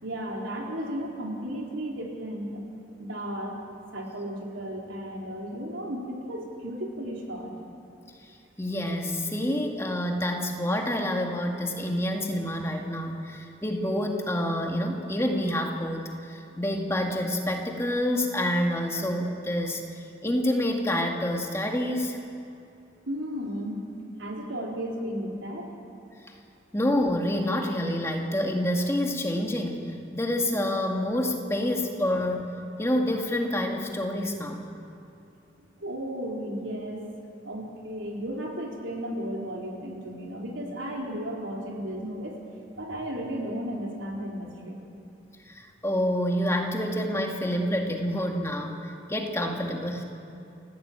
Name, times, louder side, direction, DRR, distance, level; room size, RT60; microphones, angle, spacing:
voice 1, 0.0-2.6 3.0-3.6 3.9-7.6 23.1-23.8 24.2-25.7 31.5-31.6 35.8-37.0 37.4-42.4 42.8-44.8, equal, 90° right, -1 dB, 4.4 m, -34 dB
voice 2, 8.6-22.2 26.7-32.5 32.8-34.6 45.5-48.7 49.1-50.0, left 1 dB, 15° left, 1 dB, 2.0 m, -28 dB
29.5 x 15.0 x 8.9 m, 2.6 s
head